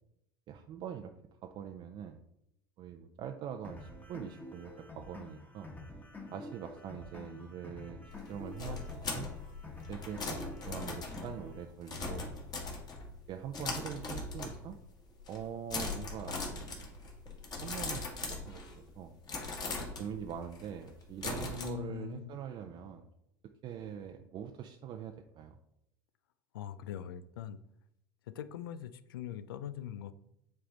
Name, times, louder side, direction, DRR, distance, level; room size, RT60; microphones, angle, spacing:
voice 1, 0.5-1.1 1.4-2.2 2.8-5.7 6.3-8.0 8.3-9.3 9.9-12.3 13.3-14.8 15.3-16.9 17.6-19.1 19.8-23.1 23.6-25.6, right 8 dB, 45° right, 5 dB, 0.5 m, -43 dB
sound 1, 3.6-11.6, left 2 dB, 15° left, 1.3 m, -49 dB
sound 2, 8.1-13.2 13.5-14.9 15.2-15.4 15.7-18.9 19.3-21.7, left 3 dB, 35° left, 1.7 m, -40 dB
voice 2, 21.6-22.4 26.5-27.6 28.3-30.1, left 11 dB, 80° left, 14 dB, 0.4 m, -42 dB
8.1 x 3.4 x 3.9 m, 0.80 s
hypercardioid pair, 85°, 12 cm